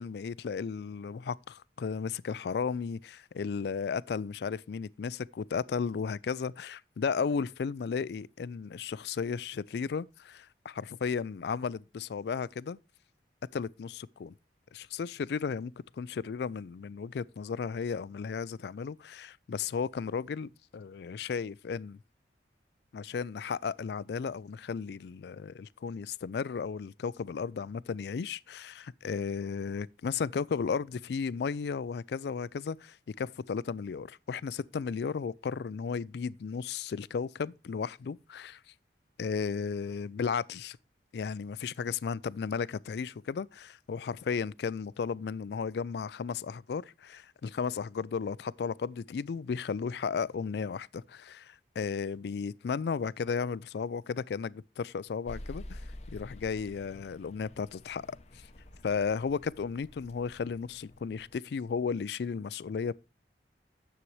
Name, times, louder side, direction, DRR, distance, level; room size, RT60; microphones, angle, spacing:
voice 1, 0.0-12.8 13.5-14.3 14.7-22.0 22.9-38.6 39.2-40.8 41.1-55.8 56.1-58.2 58.8-62.9, left 5 dB, 65° left, 0.3 m, -34 dB
sound 1, 55.3-61.4, left 1 dB, 35° left, 0.7 m, -48 dB
9.7 x 7.4 x 3.1 m
head